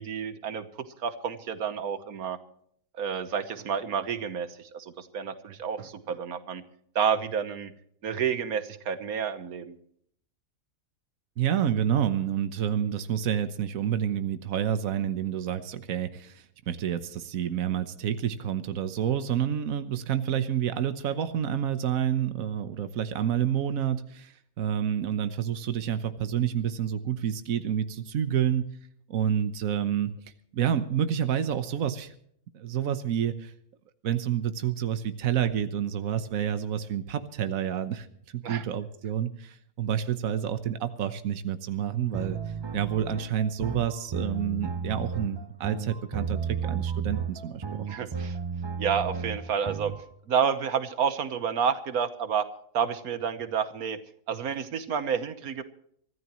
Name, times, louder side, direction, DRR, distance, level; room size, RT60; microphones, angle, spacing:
voice 1, 0.0-2.4 2.9-6.6 6.9-7.7 8.0-9.8 38.4-38.6 47.9-48.4 48.8-49.9 50.3-52.4 52.7-54.0 54.3-55.6, right 7 dB, 85° right, 11 dB, 1.6 m, -29 dB
voice 2, 11.4-28.8 29.1-30.2 30.5-32.1 32.5-33.5 34.0-38.1 38.3-42.4 42.7-48.1, right 9 dB, 70° right, 10 dB, 1.4 m, -29 dB
sound 1, 42.1-50.0, right 6 dB, 40° right, 0.3 m, -33 dB
24.5 x 14.5 x 3.1 m, 0.66 s
omnidirectional pair, 1.5 m